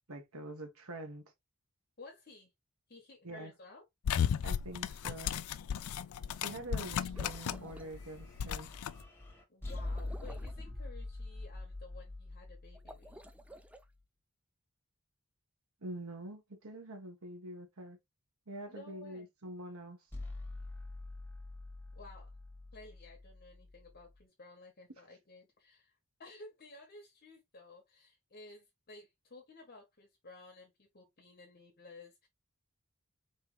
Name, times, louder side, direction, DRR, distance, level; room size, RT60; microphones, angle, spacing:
voice 1, 0.1-1.2 3.2-3.5 4.4-5.3 6.4-8.7 15.8-18.0 18.5-20.0, right 1 dB, 75° right, 1.4 m, -45 dB
voice 2, 2.0-2.5 2.9-3.8 9.5-13.2 18.7-19.3 21.9-22.3 22.7-32.3, left 2 dB, 45° left, 1.1 m, -54 dB
sound 1, 4.1-7.8 8.0-8.9, left 8 dB, 80° left, 0.4 m, -35 dB
sound 2, 6.6-13.9 20.1-24.2, left 2 dB, 10° left, 1.7 m, -45 dB
sound 3, 7.2-7.9 9.7-10.6 12.7-13.8, right 1 dB, 5° right, 0.4 m, -53 dB
4.4 x 3.2 x 3.1 m
head